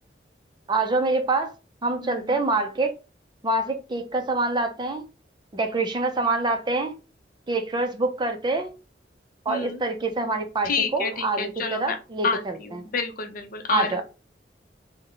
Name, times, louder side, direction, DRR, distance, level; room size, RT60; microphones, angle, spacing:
voice 1, 0.7-1.5 1.8-2.9 3.4-5.0 5.5-6.9 7.5-8.7 9.5-12.8 13.7-14.0, right 3 dB, 25° right, 0.5 m, -26 dB
voice 2, 2.0-2.4 9.5-9.8 10.6-12.0 12.2-14.0, left 5 dB, 50° left, 0.6 m, -29 dB
3.3 x 2.1 x 3.7 m
head